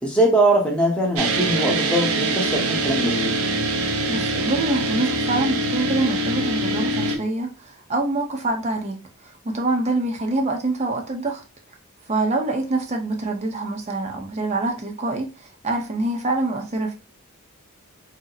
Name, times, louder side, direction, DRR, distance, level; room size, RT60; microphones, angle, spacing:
voice 1, 0.0-3.4, right 1 dB, 5° left, 0.7 m, -21 dB
sound 1, 1.2-7.2, right 2 dB, 85° right, 0.6 m, -24 dB
voice 2, 4.1-9.0 9.4-11.4 12.1-16.9, right 2 dB, 30° right, 0.6 m, -25 dB
2.8 x 2.0 x 3.8 m
head